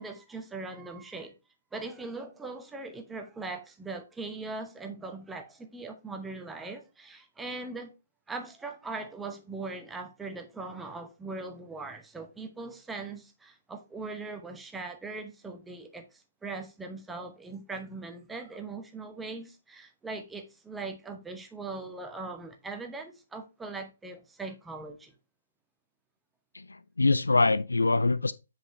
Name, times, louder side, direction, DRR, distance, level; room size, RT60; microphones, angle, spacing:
voice 1, 0.0-1.3 1.7-7.9 8.3-25.1, right 3 dB, 5° right, 0.8 m, -40 dB
voice 2, 26.5-28.3, left 3 dB, 75° left, 0.3 m, -24 dB
8.5 x 5.0 x 3.1 m
figure-of-eight pair, 130°, 0 cm